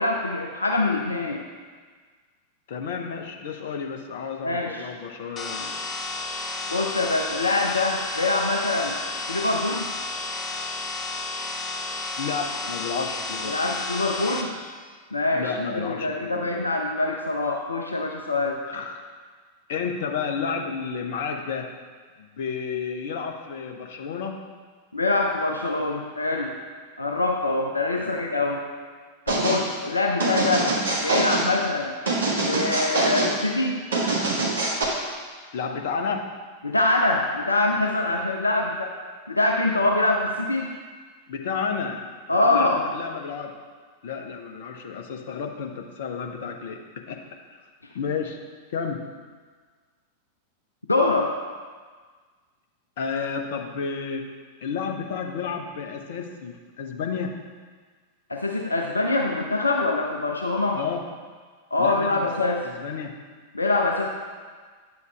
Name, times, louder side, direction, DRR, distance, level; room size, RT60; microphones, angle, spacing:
voice 1, 0.0-1.4 4.4-4.9 6.7-9.0 9.3-9.9 13.4-14.5 15.1-18.6 24.9-26.6 27.0-28.6 29.3-30.7 31.0-31.9 32.4-33.8 36.6-39.0 39.3-40.7 42.3-42.8 50.9-51.3 58.3-60.8 61.7-62.6 63.5-64.1, left 2 dB, 80° left, 1 dB, 0.6 m, -24 dB
voice 2, 2.7-5.8 12.2-13.8 15.3-16.7 18.7-19.0 19.7-21.7 22.2-24.4 28.0-28.2 30.3-30.5 35.5-36.3 41.3-43.6 44.0-47.2 47.5-47.6 47.9-48.4 48.7-49.0 53.0-54.3 54.6-57.3 60.7-61.0 61.8-62.3 62.6-63.2, left 6 dB, 55° left, 3 dB, 0.9 m, -31 dB
sound 1, 5.4-14.4, left 3 dB, 25° left, 0.9 m, -32 dB
sound 2, 29.3-29.6 30.2-31.5 32.1-33.3 33.9-34.8, right 2 dB, 65° right, 1.7 m, -24 dB
9.6 x 7.0 x 3.4 m, 1.5 s
figure-of-eight pair, 90°, 0 cm